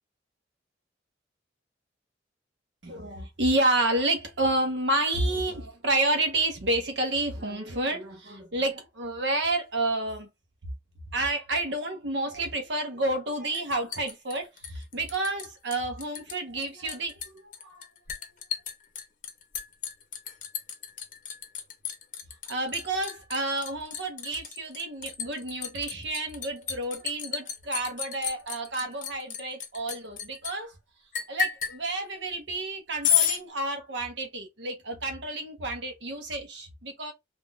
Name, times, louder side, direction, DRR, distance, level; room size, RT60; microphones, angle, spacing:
voice 1, 2.8-10.3 11.1-17.8 22.5-30.7 31.3-37.1, right 2 dB, 75° right, 1.0 m, -30 dB
Liquid, 13.5-15.5 15.7-16.4 16.6-30.5 31.1-31.8 33.0-33.4, left 8 dB, 45° left, 0.6 m, -31 dB
3.5 x 2.6 x 2.3 m
head